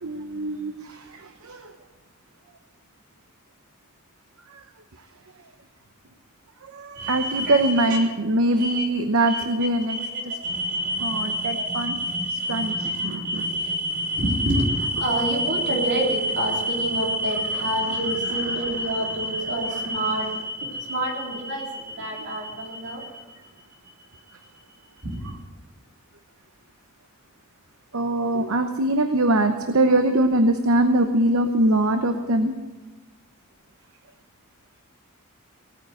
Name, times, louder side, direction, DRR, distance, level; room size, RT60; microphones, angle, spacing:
voice 1, 0.0-1.0 1.4-1.6 6.7-10.0 11.0-12.0 12.5-13.4 27.9-32.5, right 1 dB, 70° right, 7 dB, 0.9 m, -22 dB
voice 2, 7.0-8.1 8.6-8.8 9.2-9.5 9.8-23.1 25.0-25.3, equal, 55° right, -1 dB, 3.7 m, -27 dB
17.5 x 9.2 x 7.8 m, 1.2 s
head